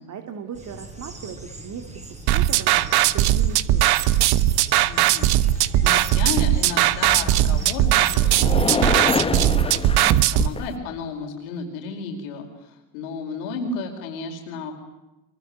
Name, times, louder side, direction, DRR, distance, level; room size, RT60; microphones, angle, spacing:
voice 1, 0.0-4.4, right 7 dB, 40° right, 7 dB, 2.5 m, -38 dB
sound 1, 0.5-7.9, right 2 dB, 15° right, 5.3 m, -40 dB
sound 2, 2.3-10.5, right 13 dB, 60° right, 1.3 m, -19 dB
voice 2, 4.9-5.3 5.8-14.7, left 4 dB, 80° left, 1 dB, 5.0 m, -33 dB
sound 3, 7.0-10.8, left 4 dB, 15° left, 1.3 m, -27 dB
25.0 x 22.0 x 9.6 m, 1.0 s
supercardioid pair, 100°, 42 cm